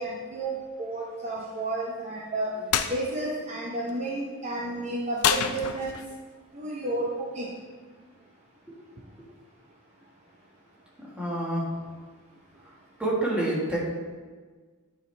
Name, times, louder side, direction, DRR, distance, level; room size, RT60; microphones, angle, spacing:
voice 1, 0.0-6.0 6.5-7.5, right 2 dB, 30° right, -3 dB, 0.7 m, -32 dB
sound 1, 2.7-2.9 5.2-6.2, left 8 dB, 70° left, 0.4 m, -26 dB
voice 2, 11.2-11.8 13.0-13.8, right 1 dB, 5° right, -6 dB, 1.5 m, -27 dB
8.5 x 4.8 x 3.3 m, 1.4 s
head